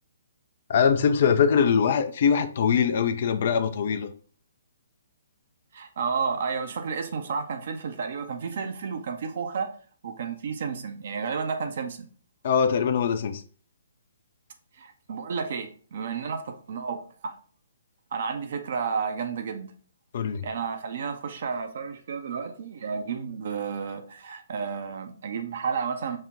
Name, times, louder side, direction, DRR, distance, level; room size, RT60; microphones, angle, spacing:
voice 1, 0.7-4.1 12.4-13.4 20.1-20.4, left 7 dB, 45° left, 0.4 m, -22 dB
voice 2, 5.7-9.7 10.0-12.1 14.8-17.4 18.1-19.7 20.4-26.2, right 5 dB, 50° right, 0.5 m, -31 dB
5.4 x 2.1 x 3.6 m
figure-of-eight pair, 130°, 0 cm